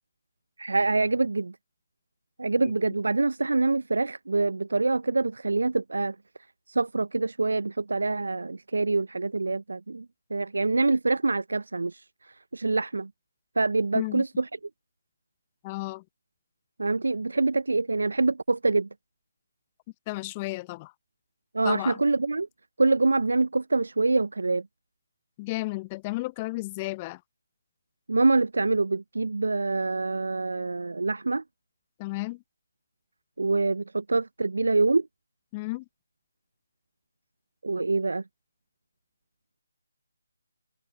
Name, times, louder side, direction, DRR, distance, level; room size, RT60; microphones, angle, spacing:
voice 1, 0.6-1.5 2.4-6.2 6.7-10.1 10.3-13.1 13.6-14.5 16.8-18.9 21.5-22.5 22.8-24.7 28.1-31.4 33.4-35.1 37.6-38.2, right 3 dB, 70° right, 0.6 m, -25 dB
voice 2, 15.6-16.0 20.1-20.9 21.6-22.0 25.4-27.2 32.0-32.4 35.5-35.8, left 22 dB, 20° left, 0.6 m, -33 dB
open air
figure-of-eight pair, 150°, 0 cm